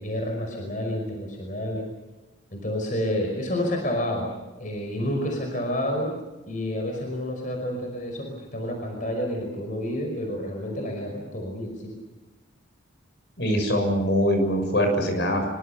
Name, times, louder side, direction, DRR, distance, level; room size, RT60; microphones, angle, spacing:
voice 1, 0.0-1.9 2.5-4.3 4.6-6.1 6.5-11.7, left 1 dB, 40° left, 2 dB, 5.5 m, -29 dB
voice 2, 13.4-15.5, equal, 60° left, 5 dB, 6.8 m, -23 dB
26.0 x 24.0 x 6.8 m, 1.1 s
head